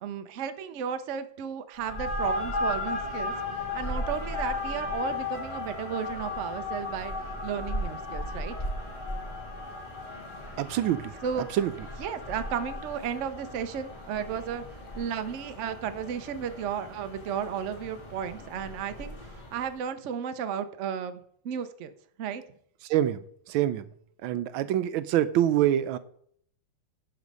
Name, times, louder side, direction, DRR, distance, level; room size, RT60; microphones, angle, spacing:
voice 1, 0.0-3.3 3.7-7.1 7.4-8.5 11.2-11.5 12.0-14.6 15.0-19.2 19.5-21.9 22.2-22.4, right 8 dB, 70° right, 10 dB, 0.7 m, -34 dB
sound 1, 1.8-19.7, left 2 dB, 25° left, 1.8 m, -36 dB
voice 2, 10.6-11.1 11.5-11.7 22.9-23.9 24.2-26.0, right 12 dB, 85° right, 13 dB, 1.4 m, -25 dB
11.0 x 4.4 x 5.3 m, 0.63 s
omnidirectional pair, 2.1 m